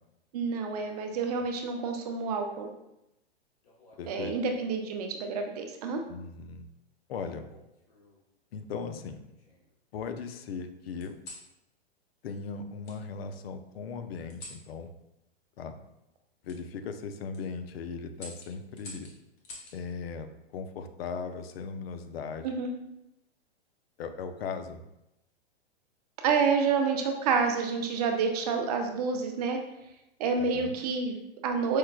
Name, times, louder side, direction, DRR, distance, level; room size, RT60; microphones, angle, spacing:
voice 1, 0.3-2.7 4.1-6.0 22.4-22.7 26.2-29.6 30.2-31.8, right 5 dB, 40° right, 4 dB, 0.4 m, -28 dB
sound 1, 3.6-4.8 5.8-6.2 7.5-8.2 8.9-9.8 11.0-11.5 12.8-13.0 14.3-14.7 16.4-16.6 17.1-17.4 18.1-19.8 21.3-21.7, left 2 dB, 35° left, 0.9 m, -49 dB
voice 2, 4.0-4.3 6.1-6.7 7.1-7.5 8.5-9.2 9.9-11.2 12.2-14.9 15.6-15.8 16.4-19.1 19.7-22.5 24.0-24.8 30.5-30.7, left 5 dB, 65° left, 8 dB, 0.5 m, -38 dB
4.6 x 2.1 x 2.2 m, 0.87 s
hypercardioid pair, 125°, 32 cm